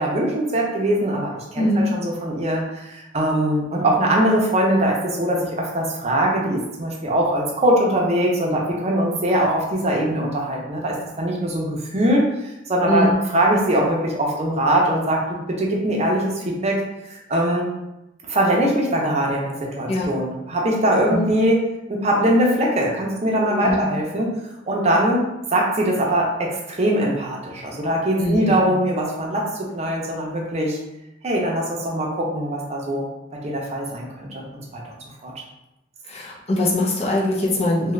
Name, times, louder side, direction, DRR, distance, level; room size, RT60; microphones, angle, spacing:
voice 1, 0.0-16.8 17.1-17.7 18.2-21.6 21.9-24.3 24.7-30.8 31.2-34.5 34.7-35.0 35.2-35.3, right 1 dB, 35° right, -2 dB, 0.6 m, -22 dB
voice 2, 1.5-1.9 12.9-13.1 19.9-20.1 21.1-21.3 23.5-23.8 28.2-28.7 36.1-37.9, left 1 dB, 35° left, -4 dB, 0.6 m, -22 dB
2.7 x 2.4 x 3.2 m, 0.92 s
head